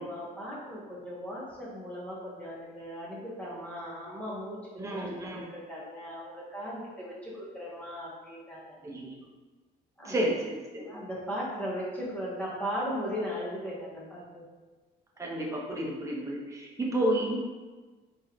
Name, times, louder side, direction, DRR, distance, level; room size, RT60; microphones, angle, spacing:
voice 1, 0.0-8.8 10.0-10.1 10.7-14.5, equal, 10° left, -6 dB, 1.3 m, -37 dB
voice 2, 4.8-5.4 8.8-9.1 10.0-11.0 15.2-17.4, right 1 dB, 20° right, -3 dB, 1.0 m, -31 dB
4.6 x 3.2 x 3.0 m, 1.3 s
cardioid pair, 110°, 17 cm